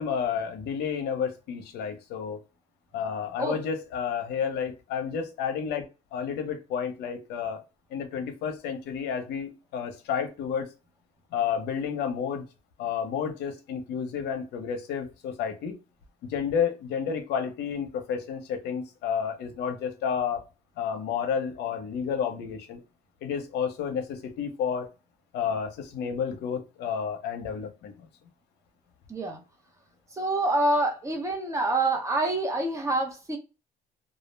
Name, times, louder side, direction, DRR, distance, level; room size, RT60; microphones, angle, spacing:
voice 1, 0.0-2.4 2.9-5.8 6.1-7.6 7.9-10.7 11.3-12.4 12.8-15.7 16.2-20.4 20.8-22.8 23.2-24.9 25.3-28.1, left 7 dB, 80° left, 0.7 m, -31 dB
voice 2, 29.1-29.4 30.1-33.4, right 2 dB, 15° right, 0.8 m, -26 dB
2.3 x 2.0 x 3.1 m
cardioid pair, 110°, 17 cm